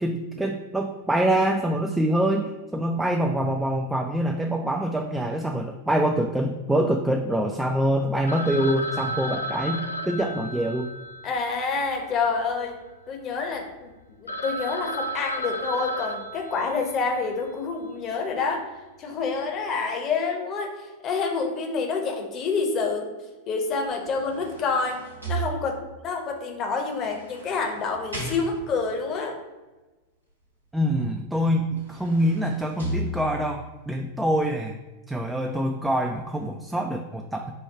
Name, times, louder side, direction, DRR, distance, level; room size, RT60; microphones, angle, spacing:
voice 1, 0.0-10.9 30.7-34.8 35.1-37.5, right 1 dB, 5° right, 3 dB, 0.3 m, -25 dB
Telephone, 8.3-12.6 12.9-13.0 13.5-13.6 14.0-14.1 14.3-17.2, equal, 75° left, 0.3 m, -33 dB
voice 2, 11.2-12.8 13.1-18.7 19.0-23.1 23.5-25.0 25.3-29.4, left 4 dB, 30° left, 2 dB, 0.8 m, -28 dB
sound 1, 23.9-26.1 26.9-28.9 31.2-31.3 31.6-33.6 34.2-34.3, right 2 dB, 80° right, 1.0 m, -36 dB
4.4 x 2.3 x 4.6 m, 1.2 s
figure-of-eight pair, 90°, 0 cm